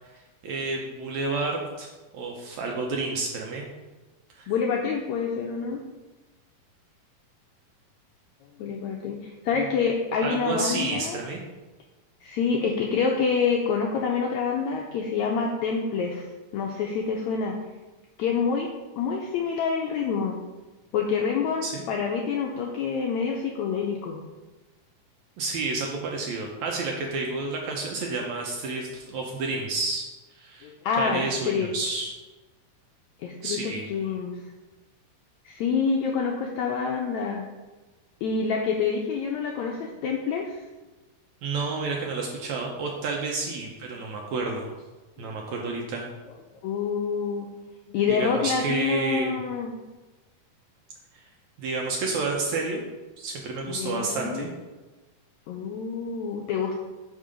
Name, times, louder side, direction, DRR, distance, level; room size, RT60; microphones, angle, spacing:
voice 1, 0.4-1.9 2.1-3.7 4.4-4.5 10.2-11.4 21.6-21.8 25.4-30.7 31.0-32.1 33.4-33.8 41.4-44.7 45.2-46.1 48.1-49.4 51.1-51.2 51.6-52.8 53.2-54.5, right 3 dB, 75° right, 0 dB, 1.7 m, -30 dB
voice 2, 4.5-5.8 8.6-11.2 12.2-17.6 18.2-18.7 19.0-20.4 20.9-24.2 30.6-31.7 33.2-34.4 35.4-37.4 38.2-40.6 45.2-45.3 46.6-47.5 47.9-49.7 53.7-54.5 55.5-56.8, left 5 dB, 90° left, 1 dB, 1.6 m, -27 dB
6.5 x 5.4 x 5.0 m, 1.2 s
omnidirectional pair, 3.9 m